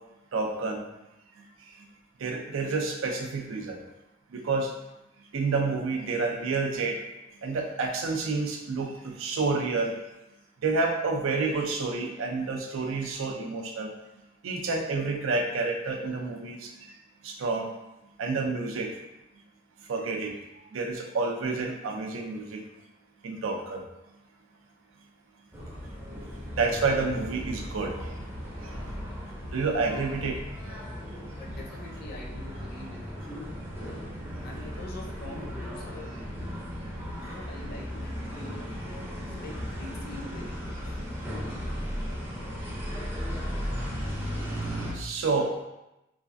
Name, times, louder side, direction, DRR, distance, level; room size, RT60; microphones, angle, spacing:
voice 1, 0.3-0.8 2.2-3.8 4.3-4.7 5.3-7.0 7.4-9.9 10.6-13.9 14.4-16.7 17.2-17.7 18.2-18.9 19.9-20.3 20.7-22.6 23.2-23.8 26.6-27.9 29.5-30.4 44.9-45.6, right 3 dB, 80° right, 2 dB, 0.4 m, -29 dB
sound 1, 25.5-44.9, equal, 10° right, 0.5 m, -36 dB
voice 2, 31.4-33.2 33.7-34.0 34.4-36.1 37.2-38.5 39.4-41.0, left 1 dB, 50° left, -1 dB, 0.5 m, -44 dB
3.2 x 2.3 x 2.5 m, 0.94 s
head